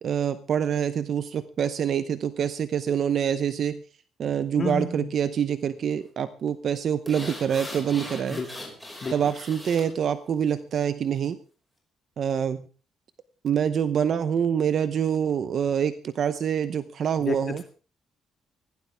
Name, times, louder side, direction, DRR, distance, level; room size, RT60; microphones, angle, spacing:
voice 1, 0.0-3.8 4.2-8.4 9.1-11.4 12.2-12.7 13.4-17.6, right 8 dB, 45° right, 12 dB, 0.8 m, -26 dB
voice 2, 4.6-5.1 8.3-8.5 9.0-9.1 17.2-17.4, left 4 dB, 30° left, 6 dB, 2.1 m, -29 dB
sound 1, 7.1-9.9 10.3-10.4, left 1 dB, ahead, 5.5 m, -39 dB
21.0 x 16.0 x 3.5 m, 0.36 s
cardioid pair, 175°, 0 cm